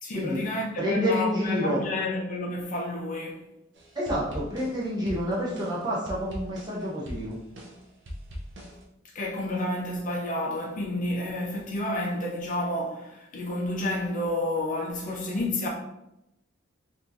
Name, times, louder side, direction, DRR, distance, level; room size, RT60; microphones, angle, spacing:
voice 1, 0.0-3.4 9.1-15.7, left 1 dB, 40° left, 0.5 m, -30 dB
voice 2, 0.8-1.8 3.9-7.4, equal, 20° right, 1.0 m, -28 dB
sound 1, 3.7-8.8, equal, 60° right, 0.7 m, -41 dB
3.6 x 2.9 x 2.5 m
head